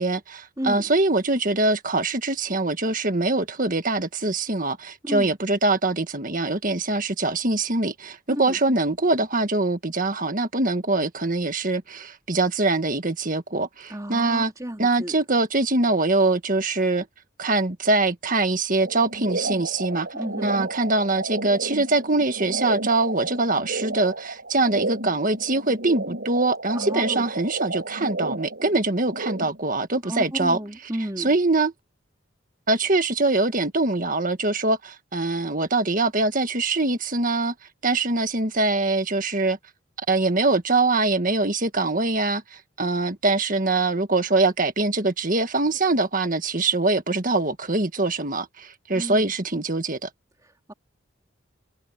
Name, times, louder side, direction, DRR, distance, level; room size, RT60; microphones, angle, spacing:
voice 1, 0.0-14.5 14.8-17.1 17.4-20.1 20.4-30.6 31.2-31.7 32.7-37.5 37.8-39.6 40.1-50.1, right 2 dB, 40° right, 1.7 m, -23 dB
voice 2, 0.6-0.9 5.0-5.3 8.3-8.6 13.9-15.2 20.1-20.6 26.7-27.2 30.0-31.3 48.9-49.3 50.4-50.7, equal, 15° right, 3.6 m, -32 dB
sound 1, 18.8-29.6, right 2 dB, 55° right, 5.9 m, -32 dB
head